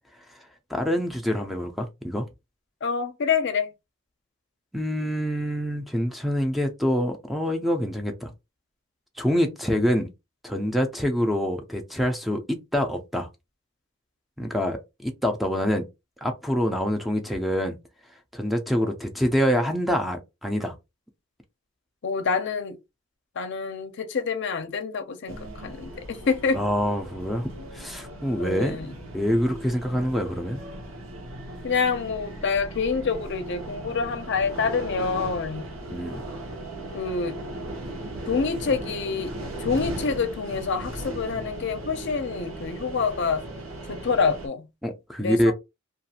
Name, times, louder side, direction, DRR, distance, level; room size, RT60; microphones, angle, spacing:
voice 1, 0.7-2.3 4.7-8.3 9.2-10.1 10.4-13.3 14.4-15.9 16.2-17.8 18.3-20.7 26.5-27.5 27.7-30.6 35.9-36.2 44.8-45.5, equal, ahead, 0.4 m, -26 dB
voice 2, 2.8-3.7 22.0-22.8 23.4-26.6 28.4-28.9 31.6-35.7 36.9-37.4 38.3-39.3 39.6-43.4 43.9-44.7 45.2-45.5, left 5 dB, 60° left, 0.5 m, -27 dB
sound 1, 25.3-44.5, right 1 dB, 80° right, 0.9 m, -37 dB
2.4 x 2.4 x 2.8 m
head